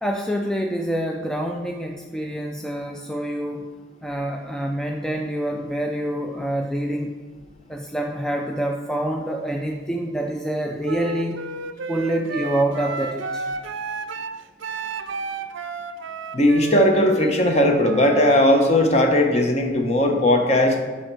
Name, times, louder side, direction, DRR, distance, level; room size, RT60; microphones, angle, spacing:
voice 1, 0.0-3.7 4.0-7.1 7.7-11.5 11.9-13.4, right 1 dB, 5° left, 2 dB, 0.3 m, -26 dB
Wind instrument woodwind instrument, 10.8-18.4, right 3 dB, 75° right, 0.5 m, -32 dB
voice 2, 16.3-20.8, left 1 dB, 35° left, 3 dB, 1.0 m, -18 dB
13.0 x 4.4 x 4.6 m, 1.4 s
head